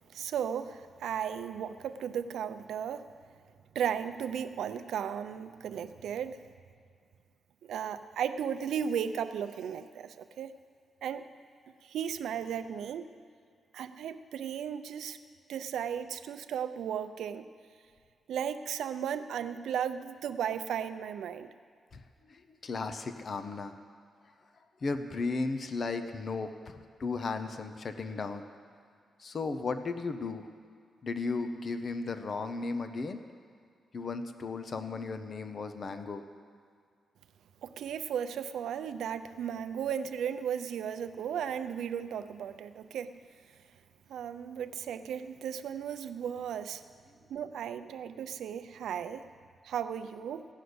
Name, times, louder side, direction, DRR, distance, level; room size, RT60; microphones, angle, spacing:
voice 1, 0.1-3.1 3.7-6.5 7.6-10.5 11.0-11.3 11.8-13.1 13.7-15.2 15.5-17.5 18.3-21.5 37.6-43.1 44.1-46.8 47.3-49.3 49.6-50.5, right 8 dB, 90° right, 9 dB, 0.6 m, -35 dB
voice 2, 22.3-23.7 24.8-28.4 29.2-30.5 31.0-33.2 33.9-36.2, left 4 dB, 40° left, 8 dB, 0.6 m, -35 dB
15.0 x 6.6 x 9.5 m, 2.3 s
wide cardioid pair, 155°, 0 cm